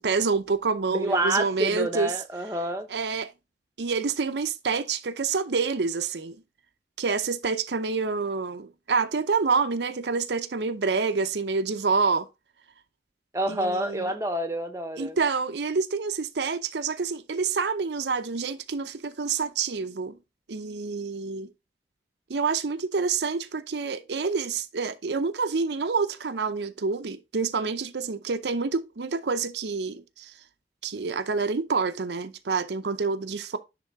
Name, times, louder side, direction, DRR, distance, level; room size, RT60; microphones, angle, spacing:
voice 1, 0.0-2.1 2.9-3.3 3.8-6.4 7.0-12.3 13.5-14.1 15.0-20.2 20.5-21.5 22.3-30.3 30.8-33.6, right 4 dB, 80° right, 0.6 m, -27 dB
voice 2, 0.9-2.9 13.3-15.2, right 1 dB, 15° right, 0.8 m, -28 dB
10.5 x 3.6 x 3.6 m
head